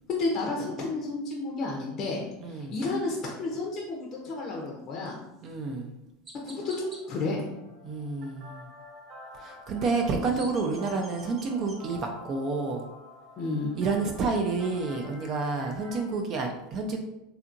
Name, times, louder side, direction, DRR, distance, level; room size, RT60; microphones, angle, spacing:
voice 1, 0.1-2.2 2.5-5.2 6.4-7.5 13.4-13.7, left 3 dB, 45° left, -2 dB, 0.5 m, -31 dB
voice 2, 2.4-2.7 5.4-5.9 7.8-8.7 9.3-12.8 13.8-17.0, right 4 dB, 45° right, 3 dB, 0.4 m, -29 dB
Chirp tweet, 5.3-5.5 6.2-7.0 10.0-11.8, right 1 dB, 30° right, 0.8 m, -48 dB
sound 1, 6.6-16.0, equal, 60° right, 0.8 m, -48 dB
2.8 x 2.4 x 2.5 m, 0.90 s
hypercardioid pair, 100°, 0 cm